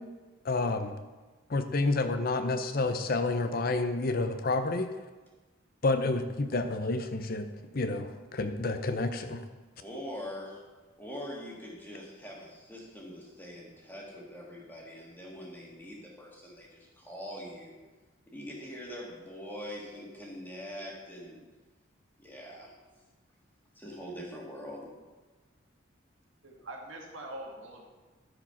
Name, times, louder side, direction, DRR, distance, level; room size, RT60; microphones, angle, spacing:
voice 1, 0.4-0.9 1.5-4.9 5.8-7.5 7.7-9.4, left 3 dB, 45° left, 8 dB, 0.6 m, -29 dB
voice 2, 9.8-10.6 11.0-17.8 18.3-21.4 22.2-22.8 23.8-24.9, equal, 10° left, -3 dB, 2.0 m, -43 dB
voice 3, 26.4-27.8, right 1 dB, 70° right, 0 dB, 2.0 m, -43 dB
13.5 x 5.0 x 5.8 m, 1.2 s
head